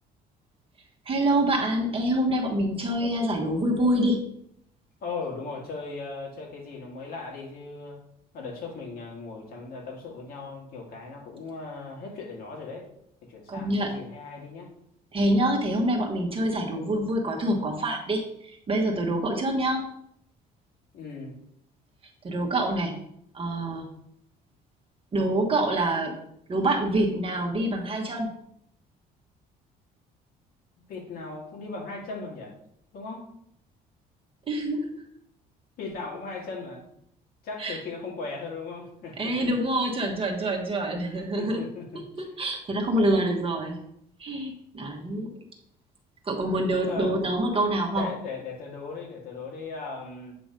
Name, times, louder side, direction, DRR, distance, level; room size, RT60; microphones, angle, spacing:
voice 1, 1.1-4.2 13.5-14.0 15.1-19.8 22.2-22.9 23.3-23.9 25.1-26.2 26.5-28.3 34.5-35.0 37.6-37.8 39.2-41.7 42.2-43.8 44.2-45.3 46.2-48.1, right 1 dB, 35° right, 1 dB, 1.2 m, -26 dB
voice 2, 5.0-8.0 8.3-12.9 13.3-14.7 20.9-21.3 30.9-32.5 32.9-33.3 35.8-36.8 37.4-39.5 41.4-42.0 46.8-47.2 47.9-50.3, left 4 dB, 60° left, -1 dB, 2.1 m, -37 dB
8.3 x 3.0 x 5.1 m, 0.72 s
cardioid pair, 110°, 17 cm